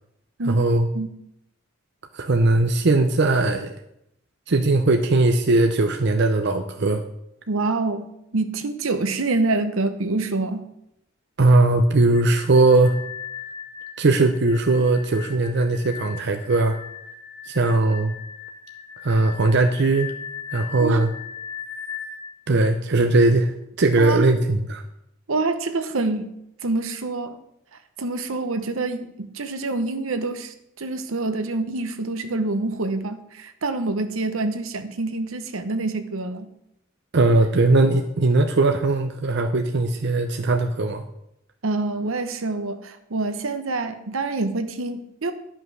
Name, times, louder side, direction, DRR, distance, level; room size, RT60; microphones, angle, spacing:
voice 1, 0.5-0.9 2.1-3.7 4.5-7.0 11.4-13.0 14.0-16.8 17.5-18.1 19.0-20.2 20.5-21.1 22.5-24.8 37.1-41.0, right 2 dB, 55° right, 5 dB, 0.6 m, -19 dB
voice 2, 7.5-10.7 20.7-21.1 24.0-24.4 25.3-26.3 26.6-27.4 28.0-36.5 41.6-45.3, right 3 dB, 75° right, 9 dB, 0.9 m, -26 dB
sound 1, 12.1-22.2, left 7 dB, 75° left, 1.1 m, -38 dB
11.0 x 5.7 x 6.1 m, 0.80 s
head